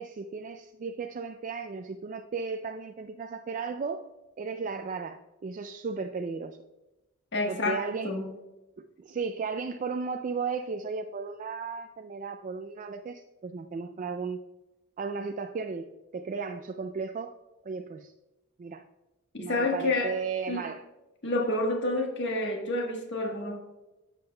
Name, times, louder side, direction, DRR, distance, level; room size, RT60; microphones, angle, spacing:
voice 1, 0.0-4.0 4.4-6.6 7.5-8.1 8.8-14.4 15.0-17.3 17.6-18.1 18.6-18.8 19.4-20.8, right 5 dB, 40° right, 6 dB, 0.3 m, -35 dB
voice 2, 7.3-8.3 19.3-20.2 20.5-20.6 21.2-23.6, left 2 dB, 60° left, 1 dB, 1.3 m, -29 dB
10.5 x 7.5 x 2.2 m, 1.0 s
head